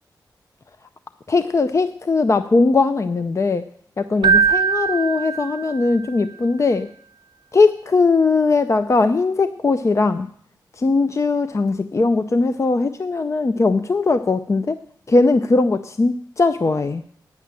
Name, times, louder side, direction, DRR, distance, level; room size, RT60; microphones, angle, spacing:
voice 1, 1.3-3.6 4.0-6.9 7.5-10.3 10.8-14.8 15.1-17.0, left 3 dB, 40° left, 10 dB, 0.5 m, -19 dB
Keyboard (musical), 4.2-6.0, right 6 dB, 75° right, 0.4 m, -20 dB
9.3 x 7.3 x 8.7 m, 0.63 s
cardioid pair, 70°, 8 cm